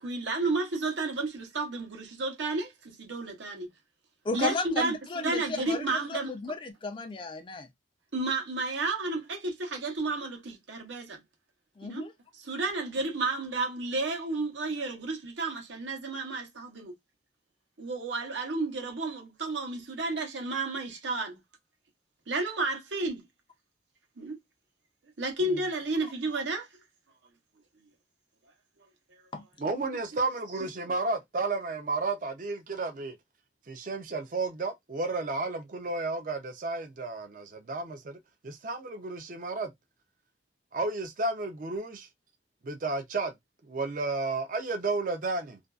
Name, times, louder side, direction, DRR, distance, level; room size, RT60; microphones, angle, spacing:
voice 1, 0.0-3.7 4.3-4.9 5.2-6.3 8.1-11.2 11.8-12.0 12.5-16.9 17.8-21.4 22.3-23.2 24.2-24.4 25.2-26.7, right 3 dB, 80° right, 0.8 m, -32 dB
voice 2, 4.2-7.7 11.8-12.1 25.5-25.6 29.3-29.4, left 3 dB, 25° left, 0.3 m, -34 dB
voice 3, 29.6-33.2 33.7-38.2 38.4-39.7 40.7-42.1 42.6-43.3 43.7-45.6, right 3 dB, 45° right, 0.4 m, -32 dB
2.5 x 2.2 x 2.3 m
head